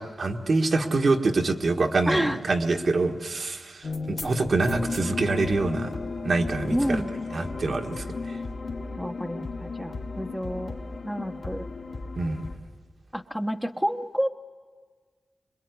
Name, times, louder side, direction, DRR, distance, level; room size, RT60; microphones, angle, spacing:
voice 1, 0.0-5.9 6.2-7.0 7.3-8.4 12.2-12.4, right 3 dB, 60° right, 3 dB, 1.6 m, -25 dB
voice 2, 2.1-2.4 6.7-7.1 9.0-10.8 11.0-11.7 13.1-14.3, equal, ahead, 5 dB, 1.0 m, -29 dB
sound 1, 3.8-12.6, left 3 dB, 65° left, 2.5 m, -35 dB
25.0 x 21.5 x 9.5 m, 1.5 s
cardioid pair, 70°, 0 cm